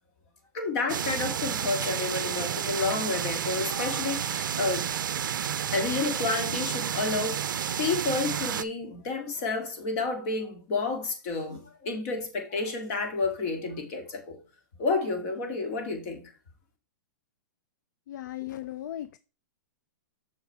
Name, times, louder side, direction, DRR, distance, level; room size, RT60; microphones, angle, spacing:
voice 1, 0.5-4.9 5.7-7.4 7.8-14.4 14.8-16.2, left 3 dB, 50° left, 2.0 m, -30 dB
sound 1, 0.9-8.6, right 9 dB, 85° right, 0.4 m, -31 dB
voice 2, 18.1-19.2, left 13 dB, 70° left, 0.4 m, -37 dB
6.4 x 4.8 x 4.6 m
hypercardioid pair, 135°, 10 cm